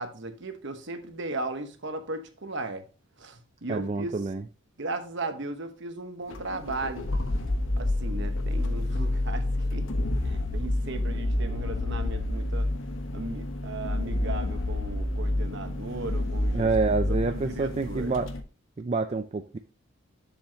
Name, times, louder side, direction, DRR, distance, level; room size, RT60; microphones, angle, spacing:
voice 1, 0.0-2.8 3.2-4.2 4.8-7.1 7.8-9.4 9.7-12.7 13.1-16.7 17.1-18.2, right 2 dB, 60° right, 1.1 m, -36 dB
voice 2, 3.7-4.4 16.5-18.3 18.8-19.6, right 3 dB, 30° right, 0.3 m, -27 dB
sound 1, 6.3-18.4, left 1 dB, 65° left, 1.0 m, -29 dB
7.5 x 7.1 x 2.8 m
head